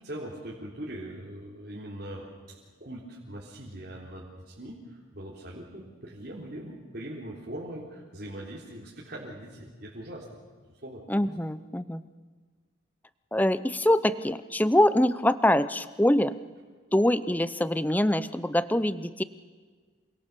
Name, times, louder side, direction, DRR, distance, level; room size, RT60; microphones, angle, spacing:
voice 1, 0.0-10.4 10.7-11.0, right 1 dB, 50° right, -5 dB, 3.8 m, -41 dB
voice 2, 11.1-12.0 13.3-16.4 16.9-19.2, left 1 dB, 10° left, 14 dB, 0.7 m, -24 dB
28.0 x 23.5 x 7.0 m, 1.5 s
head